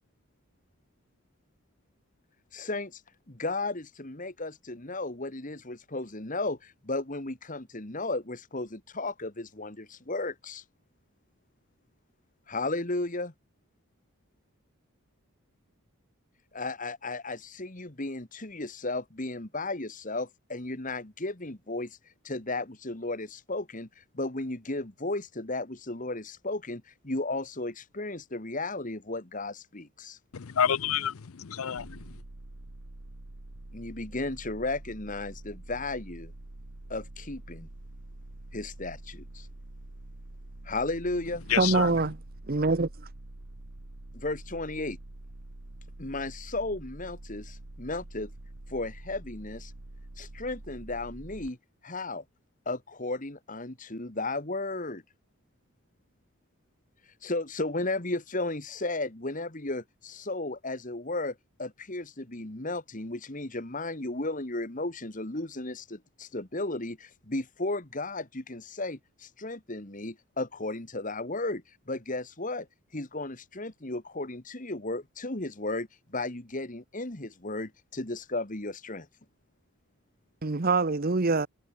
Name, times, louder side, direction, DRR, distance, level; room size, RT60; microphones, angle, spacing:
voice 1, 2.5-3.0 3.3-10.6 12.5-13.3 16.5-22.0 22.2-30.2 33.7-36.3 36.9-37.7 38.5-39.5 40.7-41.4 44.1-45.0 46.0-48.3 48.7-49.7 50.2-51.6 51.8-52.2 52.7-55.0 57.2-72.7 72.9-79.1, left 2 dB, 35° left, 1.9 m, -34 dB
voice 2, 30.3-32.2 41.5-41.9, left 8 dB, 75° left, 0.6 m, -29 dB
sound 1, 31.8-51.5, right 1 dB, 80° right, 1.8 m, -46 dB
voice 3, 41.6-42.1 42.5-42.9 80.4-81.5, right 3 dB, 40° right, 0.8 m, -24 dB
head